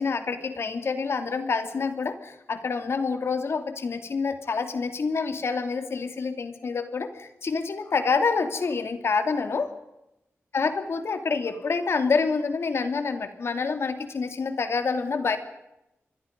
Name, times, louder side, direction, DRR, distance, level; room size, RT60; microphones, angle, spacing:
voice 1, 0.0-9.7 10.5-15.4, left 4 dB, 60° left, 8 dB, 2.7 m, -27 dB
26.0 x 22.5 x 5.3 m, 0.89 s
wide cardioid pair, 155°, 5 cm